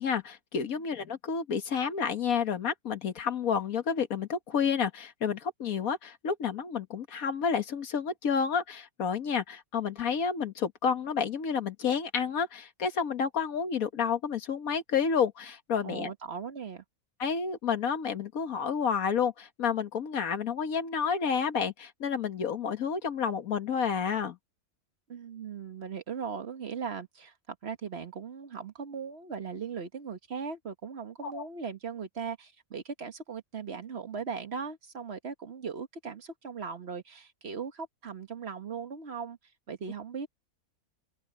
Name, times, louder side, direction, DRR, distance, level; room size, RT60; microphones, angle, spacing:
voice 1, 0.0-16.1 17.2-24.4 31.2-31.4, left 6 dB, 75° left, 1.9 m, -30 dB
voice 2, 15.8-16.8 25.1-39.4 39.7-40.3, right 6 dB, 50° right, 1.5 m, -38 dB
open air
omnidirectional pair, 1.5 m